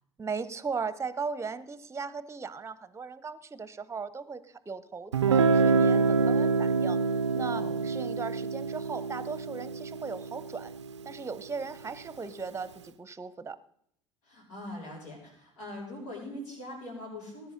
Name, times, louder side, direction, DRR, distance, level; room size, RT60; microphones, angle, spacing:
voice 1, 0.2-7.0 7.3-10.7 11.0-13.6, right 5 dB, 20° right, 16 dB, 1.0 m, -37 dB
Guitar, 5.1-10.9, right 4 dB, 80° right, 0.6 m, -26 dB
voice 2, 14.2-17.5, left 1 dB, 70° left, -2 dB, 7.1 m, -42 dB
19.5 x 9.9 x 4.0 m, 0.69 s
figure-of-eight pair, 65°, 15 cm